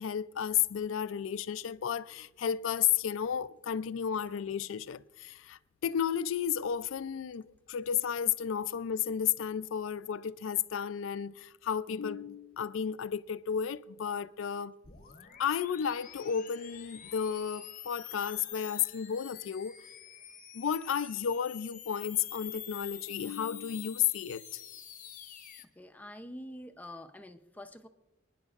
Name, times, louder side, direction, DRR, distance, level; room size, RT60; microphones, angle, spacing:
voice 1, 0.0-14.8 15.4-19.8 20.5-24.4, left 8 dB, 75° left, 0.4 m, -33 dB
sound 1, 14.8-25.7, left 10 dB, 45° left, 0.8 m, -47 dB
voice 2, 25.8-27.9, left 1 dB, 10° left, 0.5 m, -46 dB
27.5 x 10.0 x 2.4 m
head